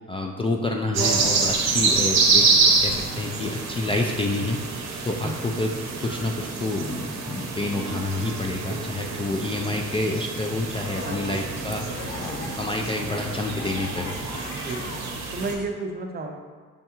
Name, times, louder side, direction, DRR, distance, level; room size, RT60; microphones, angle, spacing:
voice 1, 0.1-2.4 2.8-4.6 5.1-5.7 6.0-11.8 12.2-14.2, left 2 dB, 20° left, 1 dB, 0.3 m, -28 dB
sound 1, 0.9-15.5, right 4 dB, 65° right, 0.8 m, -26 dB
voice 2, 8.7-9.1 11.0-11.4 14.5-14.8 15.3-16.4, right 3 dB, 30° right, 3 dB, 0.6 m, -32 dB
sound 2, 10.6-15.6, left 3 dB, 50° left, 0.7 m, -39 dB
5.3 x 3.5 x 2.9 m, 1.5 s
cardioid pair, 90°, 30 cm